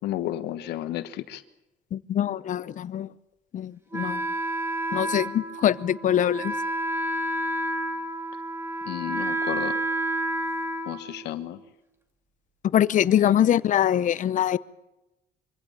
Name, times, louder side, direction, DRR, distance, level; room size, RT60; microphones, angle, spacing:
voice 1, 0.0-1.4 8.8-9.7 10.9-11.6 13.2-13.5, left 13 dB, 80° left, 1.4 m, -32 dB
voice 2, 1.9-3.1 3.5-4.2 4.9-6.5 12.7-14.6, left 10 dB, 50° left, 0.7 m, -23 dB
Wind instrument woodwind instrument, 3.9-11.6, right 1 dB, 15° right, 2.4 m, -30 dB
24.0 x 16.0 x 8.8 m
cardioid pair, 110°, 17 cm